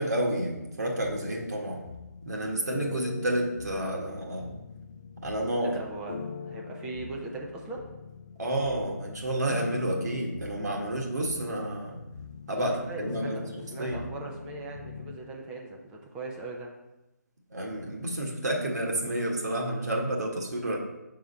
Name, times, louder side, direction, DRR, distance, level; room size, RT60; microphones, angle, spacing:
voice 1, 0.0-1.8 2.2-4.6 5.2-5.8 8.4-12.0 12.5-13.5 13.8-14.0 17.5-20.8, right 1 dB, 65° right, -1 dB, 1.6 m, -30 dB
sound 1, 1.0-15.2, left 5 dB, 40° left, 0.5 m, -42 dB
voice 2, 5.6-7.9 12.5-13.4 13.7-16.7, right 3 dB, 10° right, 0 dB, 0.5 m, -39 dB
5.6 x 3.8 x 5.4 m, 0.98 s
figure-of-eight pair, 155°, 10 cm